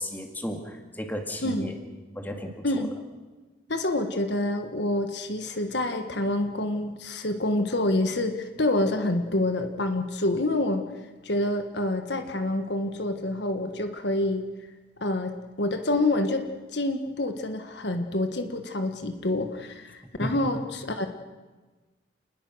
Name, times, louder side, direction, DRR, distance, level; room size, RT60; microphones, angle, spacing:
voice 1, 0.0-1.7 2.2-2.9 20.2-20.4, equal, 10° left, 3 dB, 2.2 m, -34 dB
voice 2, 3.7-10.9 11.2-14.5 15.0-16.4 16.7-21.1, left 1 dB, 65° left, 7 dB, 1.5 m, -27 dB
29.0 x 20.5 x 6.3 m, 1.3 s
head